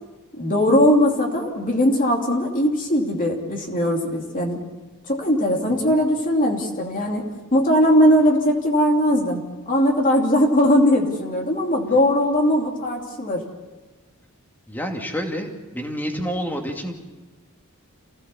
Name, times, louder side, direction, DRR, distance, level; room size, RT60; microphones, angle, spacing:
voice 1, 0.3-4.6 5.1-7.2 7.5-13.4, equal, 40° left, 0 dB, 2.8 m, -19 dB
voice 2, 14.7-16.9, equal, 10° left, 2 dB, 2.4 m, -28 dB
28.0 x 16.5 x 7.1 m, 1.2 s
head